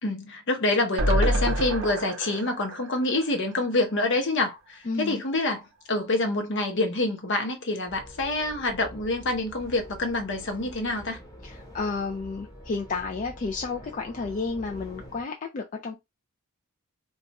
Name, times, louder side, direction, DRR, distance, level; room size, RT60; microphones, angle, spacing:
voice 1, 0.0-11.2, left 2 dB, 55° left, 0.8 m, -27 dB
sound 1, 1.0-4.2 4.6-4.7 4.9-5.0, right 1 dB, 55° right, 0.5 m, -28 dB
voice 2, 4.8-5.2 11.4-16.0, left 4 dB, 35° left, 0.3 m, -31 dB
sound 2, 7.9-15.2, equal, 15° left, 0.9 m, -45 dB
2.4 x 2.3 x 4.0 m
head